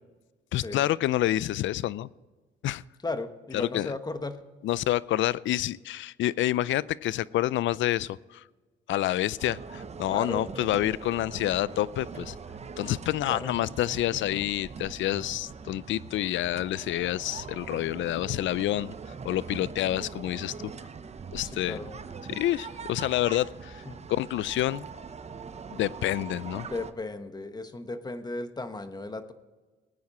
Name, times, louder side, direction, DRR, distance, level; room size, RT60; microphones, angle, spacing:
voice 1, 0.5-2.1 2.6-2.8 3.5-3.9 4.6-8.4 8.9-12.4 12.8-18.9 19.2-20.7 21.3-21.8 22.3-23.8 24.1-24.8 25.7-26.7, left 14 dB, 75° left, 21 dB, 0.5 m, -28 dB
voice 2, 3.0-4.4 10.1-10.5 13.3-13.5 14.1-14.4 21.4-21.9 23.9-24.0 26.5-29.3, left 2 dB, 20° left, 9 dB, 1.2 m, -36 dB
sound 1, 9.4-26.9, right 5 dB, 35° right, 0.8 m, -42 dB
19.5 x 9.6 x 4.3 m, 1.3 s
cardioid pair, 90°, 20 cm